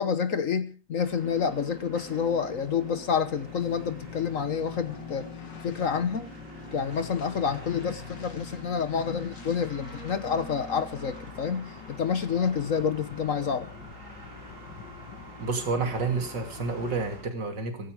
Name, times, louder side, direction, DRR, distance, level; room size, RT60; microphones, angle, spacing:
voice 1, 0.0-5.3 5.6-6.3 6.7-13.7, left 6 dB, 50° left, 12 dB, 1.4 m, -28 dB
sound 1, 1.0-17.2, left 1 dB, 45° right, 4.5 m, -47 dB
sound 2, 1.2-17.0, left 4 dB, 75° left, 2.5 m, -45 dB
voice 2, 15.4-17.9, right 4 dB, 75° right, 5 dB, 3.4 m, -30 dB
15.5 x 15.0 x 5.0 m, 0.36 s
omnidirectional pair, 1.9 m